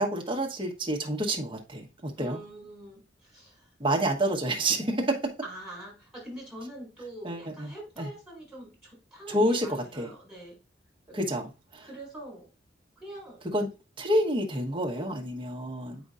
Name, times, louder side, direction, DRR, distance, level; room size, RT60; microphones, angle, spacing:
voice 1, 0.0-2.4 3.8-5.3 7.2-7.7 8.0-8.1 9.3-10.1 11.1-11.9 13.4-13.7 14.0-16.0, right 1 dB, 30° right, 1.2 m, -28 dB
voice 2, 2.2-3.7 5.4-10.6 11.1-11.2 11.8-12.5 13.0-13.4, right 1 dB, ahead, 4.1 m, -44 dB
7.8 x 5.2 x 2.5 m
head